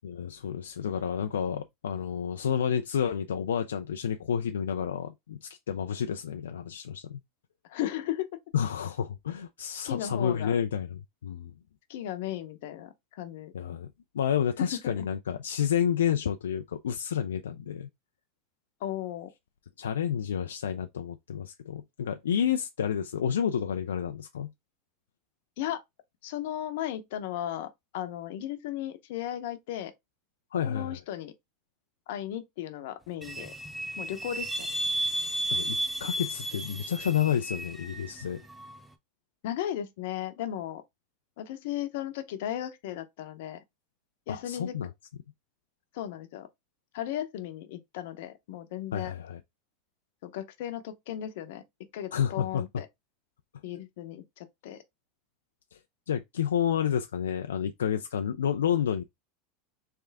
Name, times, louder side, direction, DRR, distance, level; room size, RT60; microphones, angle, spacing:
voice 1, 0.0-7.2 8.5-11.5 13.5-17.9 19.8-24.5 30.5-31.0 35.5-38.4 44.3-44.9 48.9-49.4 52.1-52.6 56.1-59.0, left 8 dB, 90° left, 0.3 m, -30 dB
voice 2, 7.7-8.3 9.8-10.6 11.9-13.5 14.6-15.0 18.8-19.3 25.6-25.8 26.2-29.9 30.7-31.3 32.1-33.6 34.0-34.7 39.4-40.8 41.4-43.6 44.3-44.8 45.9-46.5 46.9-49.1 50.2-51.6 51.9-52.9 53.6-54.8, left 11 dB, 70° left, 0.8 m, -35 dB
sound 1, 33.2-38.8, right 1 dB, 5° right, 0.8 m, -33 dB
3.6 x 3.4 x 3.4 m
hypercardioid pair, 100°, 0 cm